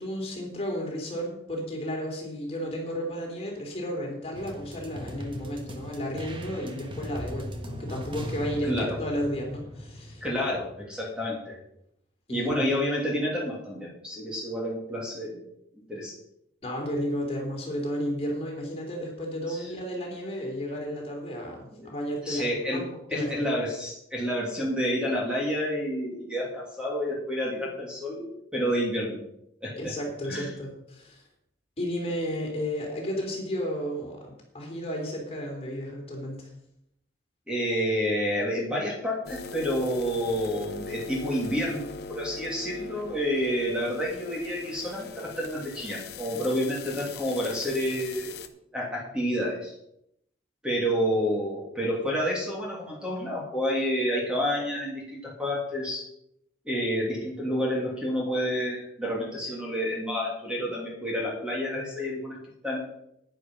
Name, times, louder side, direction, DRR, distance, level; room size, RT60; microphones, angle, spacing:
voice 1, 0.0-10.3 12.3-12.7 16.6-22.8 23.1-23.3 29.8-31.2 31.8-36.5, equal, 30° left, -1 dB, 3.5 m, -33 dB
Big booming fill, 4.3-10.9, equal, 25° right, 1.3 m, -39 dB
voice 2, 8.6-9.0 10.2-11.6 12.3-15.4 15.9-16.1 19.5-19.7 21.7-21.9 22.2-22.8 23.1-29.2 29.6-29.9 30.3-30.5 37.5-48.4 48.7-49.7 50.6-56.0 56.7-62.8, equal, 5° right, -4 dB, 2.8 m, -29 dB
sound 1, 39.2-48.5, left 4 dB, 55° left, 1.0 m, -41 dB
10.5 x 10.0 x 5.5 m, 0.77 s
head